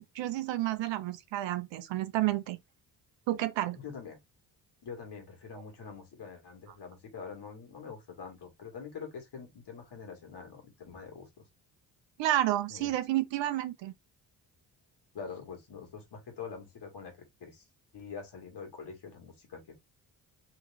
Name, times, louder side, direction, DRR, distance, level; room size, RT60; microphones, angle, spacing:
voice 1, 0.0-2.6 3.3-3.8 12.2-13.9, right 14 dB, 75° right, 0.8 m, -30 dB
voice 2, 3.7-4.2 4.8-11.5 12.7-12.9 15.1-17.6 17.9-19.7, left 6 dB, 60° left, 2.3 m, -45 dB
4.0 x 3.0 x 3.7 m
supercardioid pair, 50°, 45 cm